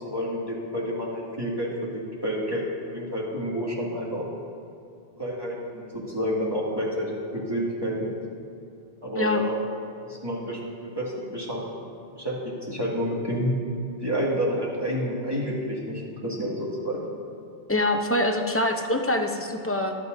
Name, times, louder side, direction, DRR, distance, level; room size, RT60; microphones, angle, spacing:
voice 1, 0.0-2.6 2.9-4.2 5.2-8.1 9.0-9.6 10.0-10.6 11.0-11.8 12.1-13.5 14.0-17.1, equal, 20° right, -6 dB, 2.3 m, -29 dB
voice 2, 17.7-20.0, left 1 dB, 15° left, 3 dB, 0.6 m, -24 dB
23.0 x 9.3 x 2.7 m, 2.6 s
omnidirectional pair, 1.2 m